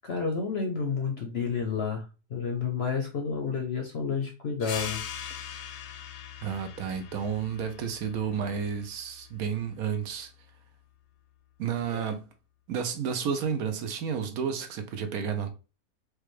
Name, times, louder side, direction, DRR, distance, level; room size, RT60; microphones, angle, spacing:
voice 1, 0.0-2.1 2.3-5.0 11.9-12.1, left 5 dB, 55° left, 0.8 m, -30 dB
sound 1, 4.6-9.8, left 8 dB, 85° left, 1.3 m, -41 dB
voice 2, 6.4-10.3 11.6-12.2 12.7-15.5, right 7 dB, 70° right, 1.1 m, -31 dB
4.8 x 2.3 x 3.1 m
omnidirectional pair, 1.7 m